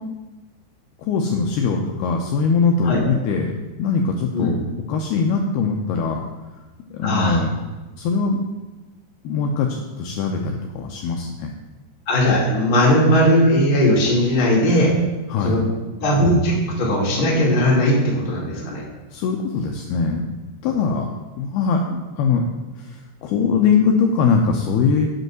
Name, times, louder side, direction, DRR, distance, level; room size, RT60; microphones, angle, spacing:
voice 1, 1.0-3.5 3.8-4.6 4.9-6.2 6.9-7.5 8.0-8.4 9.2-11.5 15.3-15.6 19.1-20.3 20.6-21.1 21.4-21.8 22.2-22.5 22.8-25.1, left 5 dB, 85° left, 2 dB, 2.3 m, -21 dB
voice 2, 7.0-7.4 12.1-14.9 15.4-15.7 16.0-18.8, equal, 25° left, -4 dB, 1.2 m, -18 dB
8.5 x 5.4 x 7.6 m, 1.2 s
omnidirectional pair, 5.3 m